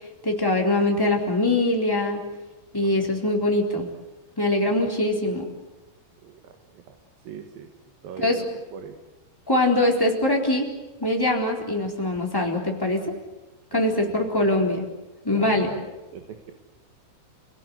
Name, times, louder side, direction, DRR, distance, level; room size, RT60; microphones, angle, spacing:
voice 1, 0.2-2.2 2.7-3.9 4.4-5.5 8.2-8.4 9.5-10.7 11.0-13.1 13.7-14.8 15.2-15.8, left 2 dB, 5° left, 0 dB, 3.6 m, -23 dB
voice 2, 6.2-7.0 7.2-7.7 8.0-9.0 13.7-14.7 15.3-16.5, right 8 dB, 65° right, 6 dB, 3.3 m, -41 dB
29.0 x 18.0 x 9.6 m, 1.1 s
omnidirectional pair, 4.7 m